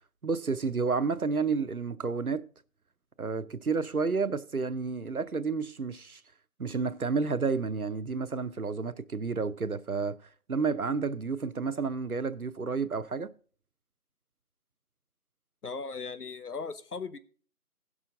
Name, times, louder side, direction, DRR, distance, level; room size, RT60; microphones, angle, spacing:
voice 1, 0.2-2.5 3.2-6.2 6.6-10.2 10.5-13.3, right 4 dB, 70° right, 0.7 m, -30 dB
voice 2, 15.6-17.2, left 4 dB, 75° left, 0.9 m, -37 dB
16.5 x 6.2 x 3.6 m
figure-of-eight pair, 180°, 46 cm